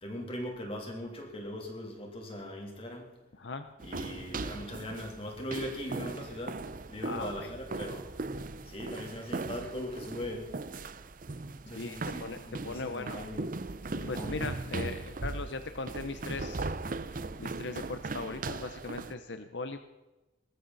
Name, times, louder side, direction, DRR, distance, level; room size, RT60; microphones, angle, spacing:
voice 1, 0.0-3.1 3.8-6.6 6.9-8.1 8.6-10.6 11.6-13.5 13.8-14.4, left 1 dB, 30° left, 1 dB, 3.2 m, -40 dB
sound 1, 3.8-19.1, right 3 dB, 45° right, 0.7 m, -39 dB
voice 2, 7.0-7.5 11.7-13.2 14.1-19.8, left 3 dB, 70° left, 9 dB, 0.9 m, -39 dB
20.5 x 14.0 x 4.1 m, 1.1 s
head